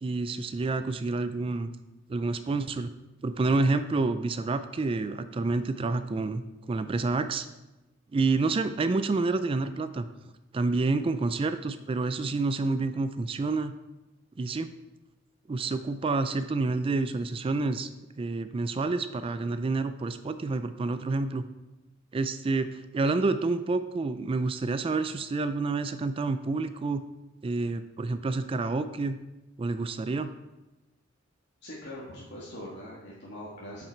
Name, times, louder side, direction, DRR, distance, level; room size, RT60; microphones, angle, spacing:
voice 1, 0.0-1.7 2.1-2.9 3.2-7.5 8.1-10.1 10.5-13.7 14.4-14.7 15.5-17.9 18.2-21.5 22.1-27.0 27.4-29.2 29.6-30.3, right 3 dB, 25° right, 11 dB, 0.3 m, -28 dB
voice 2, 31.6-33.9, left 1 dB, 60° left, -6 dB, 1.6 m, -42 dB
7.2 x 6.0 x 4.5 m, 1.0 s
head